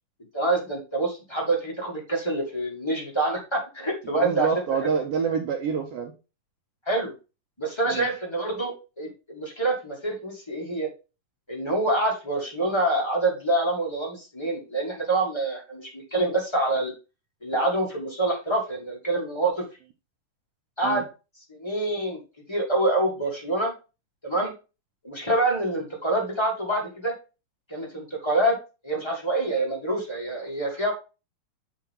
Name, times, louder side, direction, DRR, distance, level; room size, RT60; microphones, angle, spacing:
voice 1, 0.3-4.5 4.8-4.9 6.9-7.1 7.6-10.9 11.5-16.9 17.4-19.6 20.8-21.0 21.5-22.2 22.5-23.7 24.2-24.5 25.0-27.1 27.7-28.6 28.8-30.9, right 2 dB, 15° left, -2 dB, 1.0 m, -26 dB
voice 2, 4.2-6.1 7.9-8.1 20.8-21.0, right 6 dB, 75° right, 2 dB, 1.4 m, -27 dB
7.4 x 4.7 x 3.6 m, 0.30 s
omnidirectional pair, 3.7 m